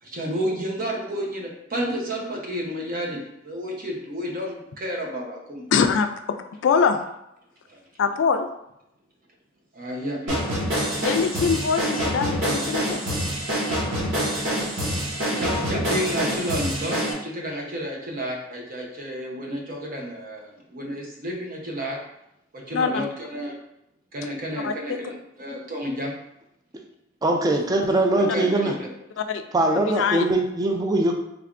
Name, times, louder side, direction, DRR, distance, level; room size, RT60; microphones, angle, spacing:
voice 1, 0.0-5.6 7.7-7.8 9.7-10.4 15.2-22.0 22.5-23.6 24.1-26.1 28.3-28.9, equal, 50° right, -1 dB, 0.8 m, -31 dB
voice 2, 5.7-6.4 6.6-7.0 8.0-8.5 11.0-13.1 22.7-23.1 24.6-25.0 28.3-28.4 29.2-29.4 29.9-30.3, left 6 dB, 70° left, 8 dB, 0.3 m, -23 dB
sound 1, 10.3-17.1, equal, 85° right, 1.3 m, -26 dB
voice 3, 27.2-28.7 29.5-31.1, right 2 dB, 20° right, 2 dB, 0.4 m, -21 dB
3.4 x 3.3 x 2.4 m, 0.82 s
head